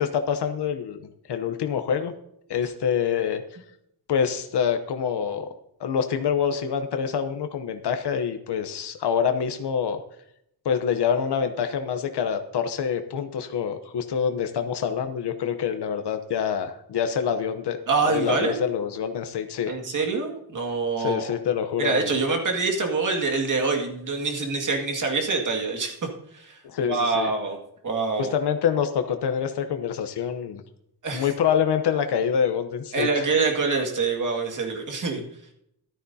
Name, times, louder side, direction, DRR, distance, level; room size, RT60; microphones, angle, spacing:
voice 1, 0.0-2.1 2.5-3.4 4.1-5.5 5.8-10.0 10.6-17.8 18.0-19.7 21.0-22.2 26.6-27.3 28.2-30.6 31.1-33.3 35.2-35.3, left 7 dB, 85° left, 7 dB, 0.9 m, -26 dB
voice 2, 17.9-18.7 19.7-21.3 21.8-26.1 26.3-26.6 26.9-27.6 27.8-28.3 31.0-31.3 32.9-35.2, right 4 dB, 50° right, 2 dB, 2.1 m, -25 dB
14.0 x 12.5 x 2.8 m, 0.76 s
wide cardioid pair, 165°, 39 cm